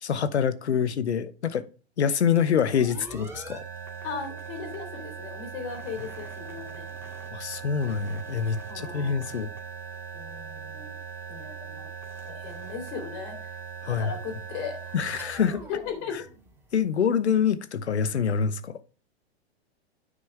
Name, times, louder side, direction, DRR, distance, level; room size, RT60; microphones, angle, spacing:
voice 1, 0.0-1.6 2.0-3.6 7.3-9.5 13.8-14.1 14.9-15.6 16.1-16.2 16.7-18.8, left 7 dB, 80° left, 1.0 m, -26 dB
sound 1, 2.3-16.9, right 6 dB, 5° right, 2.1 m, -40 dB
voice 2, 4.0-6.9 8.7-9.2 10.1-10.9 11.3-11.9 12.3-13.4 13.8-14.9 15.7-16.2, left 6 dB, 45° left, 3.6 m, -37 dB
9.6 x 5.5 x 3.5 m
hypercardioid pair, 110°, 33 cm